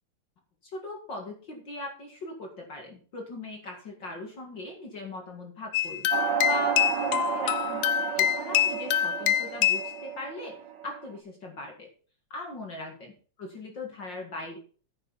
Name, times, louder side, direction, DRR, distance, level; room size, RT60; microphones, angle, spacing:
voice 1, 0.6-6.1 6.4-7.9 8.2-10.5 10.8-11.9 12.3-14.6, left 2 dB, 40° left, 1 dB, 2.4 m, -39 dB
sound 1, 5.7-9.9, left 10 dB, 75° left, 1.9 m, -25 dB
sound 2, 6.1-11.1, right 8 dB, 80° right, 0.9 m, -32 dB
10.0 x 9.3 x 4.1 m, 0.40 s
omnidirectional pair, 3.4 m